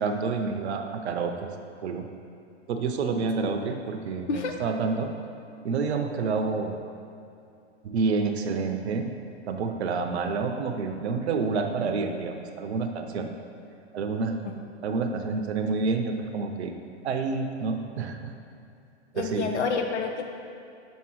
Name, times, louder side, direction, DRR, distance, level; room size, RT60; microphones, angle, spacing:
voice 1, 0.0-1.5 1.8-2.1 2.7-5.1 5.6-6.8 7.8-9.1 9.5-13.3 13.9-14.4 14.8-16.7 17.0-18.3 19.1-19.5, right 4 dB, 70° right, 5 dB, 0.7 m, -28 dB
voice 2, 19.1-20.2, left 5 dB, 75° left, 4 dB, 0.8 m, -28 dB
7.2 x 5.3 x 3.1 m, 2.5 s
hypercardioid pair, 115°, 35 cm